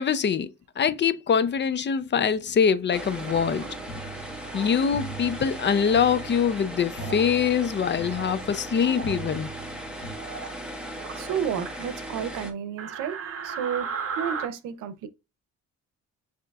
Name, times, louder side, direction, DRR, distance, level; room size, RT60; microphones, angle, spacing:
voice 1, 0.0-3.7 4.5-9.5, left 7 dB, 35° left, 0.5 m, -24 dB
sound 1, 2.9-12.5, right 1 dB, 5° right, 1.4 m, -38 dB
sound 2, 3.2-3.7 4.4-4.8 5.5-6.0 6.9-7.3 7.8-8.4 8.7-9.1 10.1-10.6 10.9-11.9 12.8-14.5, right 6 dB, 50° right, 0.9 m, -36 dB
sound 3, 3.3-10.1, right 3 dB, 60° left, 1.1 m, -41 dB
voice 2, 11.2-13.9 14.2-15.1, right 8 dB, 85° right, 0.7 m, -31 dB
6.9 x 2.9 x 2.3 m
cardioid pair, 90°, 30 cm